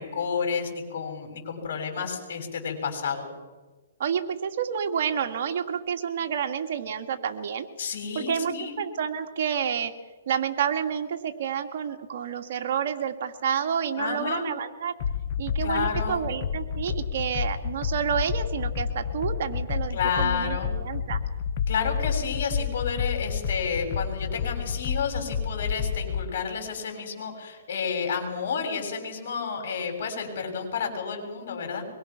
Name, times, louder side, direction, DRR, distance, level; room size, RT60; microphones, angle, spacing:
voice 1, 0.0-3.3 7.8-8.7 14.0-14.4 15.6-16.2 19.9-20.7 21.7-31.9, left 6 dB, 60° left, 4 dB, 7.1 m, -30 dB
voice 2, 4.0-7.7 8.1-9.9 10.3-14.9 15.4-21.2, right 8 dB, 55° right, 5 dB, 2.3 m, -29 dB
sound 1, 15.0-26.3, left 7 dB, 45° left, 1.2 m, -30 dB
24.0 x 22.5 x 6.2 m, 1.3 s
hypercardioid pair, 150°, 0 cm